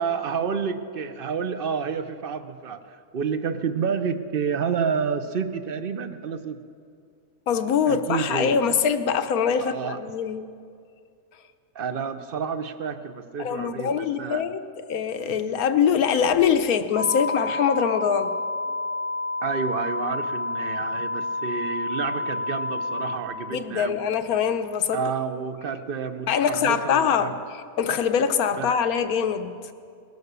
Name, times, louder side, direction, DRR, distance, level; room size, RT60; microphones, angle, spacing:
voice 1, 0.0-6.6 7.9-8.6 9.6-10.0 11.7-14.4 19.4-24.0 24.9-27.4 28.6-28.7, right 6 dB, 50° right, 11 dB, 0.8 m, -29 dB
voice 2, 7.5-10.5 13.4-14.6 14.9-18.3 23.5-25.0 26.3-29.7, left 7 dB, 85° left, 9 dB, 1.3 m, -23 dB
sound 1, 16.9-23.2, left 2 dB, 85° right, 1.5 m, -29 dB
19.5 x 10.5 x 6.8 m, 2.3 s
omnidirectional pair, 1.5 m